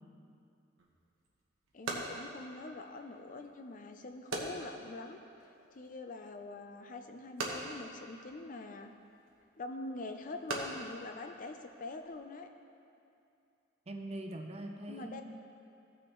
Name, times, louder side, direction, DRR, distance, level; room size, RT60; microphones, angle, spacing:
sound 1, 0.8-12.2, right 2 dB, 85° right, 1.2 m, -44 dB
voice 1, 1.7-5.2 5.7-8.9 9.6-12.5 14.9-15.2, left 2 dB, 40° left, 6 dB, 0.5 m, -44 dB
voice 2, 13.9-15.2, right 1 dB, 35° right, 4 dB, 0.6 m, -42 dB
15.5 x 6.3 x 3.1 m, 2.6 s
head